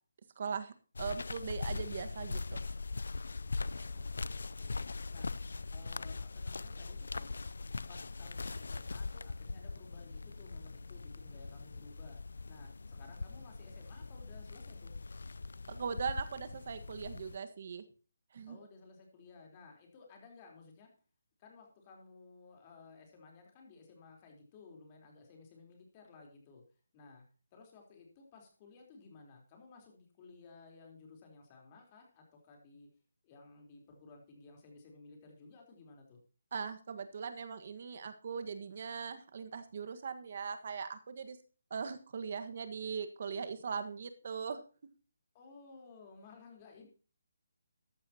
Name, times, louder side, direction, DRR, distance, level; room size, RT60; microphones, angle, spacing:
voice 1, 0.4-0.7 1.0-2.6 15.7-17.8 18.3-18.6 36.5-41.4 41.7-44.6, right 6 dB, 45° right, 9 dB, 1.6 m, -40 dB
sound 1, 0.9-17.4, left 3 dB, 80° left, 0.5 m, -41 dB
voice 2, 3.5-4.8 5.1-5.3 5.7-7.3 7.9-12.2 12.4-14.9 18.5-20.9 21.4-26.6 26.9-27.2 27.5-32.9 33.2-36.2 45.3-46.9, left 4 dB, 25° left, 2 dB, 3.9 m, -56 dB
14.0 x 11.5 x 2.9 m, 0.37 s
hypercardioid pair, 165°, 0 cm